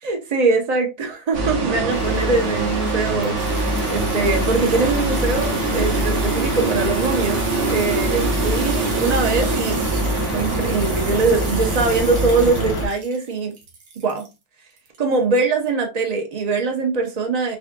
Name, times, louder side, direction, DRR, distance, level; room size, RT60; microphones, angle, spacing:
voice 1, 0.0-7.4 7.7-9.8 10.3-13.5 14.0-14.3 15.0-17.6, right 3 dB, 55° right, 0.4 m, -22 dB
sound 1, 1.3-12.9, right 2 dB, 75° right, 1.7 m, -23 dB
sound 2, 1.9-12.9, left 4 dB, 65° left, 0.6 m, -35 dB
sound 3, 3.4-14.3 14.8-15.4 15.7-15.8, right 4 dB, 90° right, 1.8 m, -35 dB
4.8 x 2.8 x 2.2 m
omnidirectional pair, 1.9 m